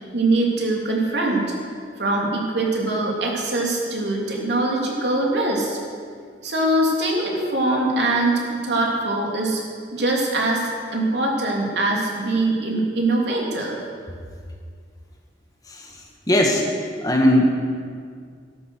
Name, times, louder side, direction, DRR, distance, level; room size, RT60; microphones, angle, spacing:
voice 1, 0.1-1.5 2.0-5.8 6.4-9.6 9.9-13.8, right 2 dB, 70° right, -2 dB, 3.0 m, -22 dB
voice 2, 16.3-16.6 17.0-17.5, left 1 dB, 20° left, 0 dB, 1.5 m, -18 dB
13.0 x 13.0 x 6.4 m, 2.1 s
head